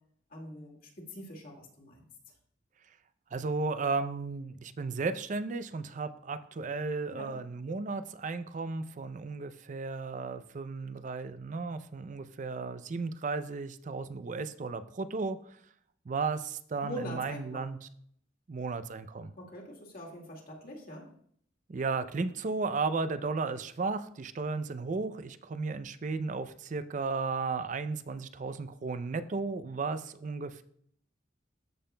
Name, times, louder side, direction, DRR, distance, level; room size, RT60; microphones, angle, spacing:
voice 1, 0.3-2.0 7.1-7.3 16.8-17.7 19.4-21.1, equal, 50° left, -1 dB, 2.0 m, -43 dB
voice 2, 3.3-15.4 16.1-17.8 18.5-19.3 21.7-30.6, right 4 dB, 40° right, 12 dB, 0.4 m, -34 dB
13.5 x 5.7 x 2.2 m, 0.64 s
head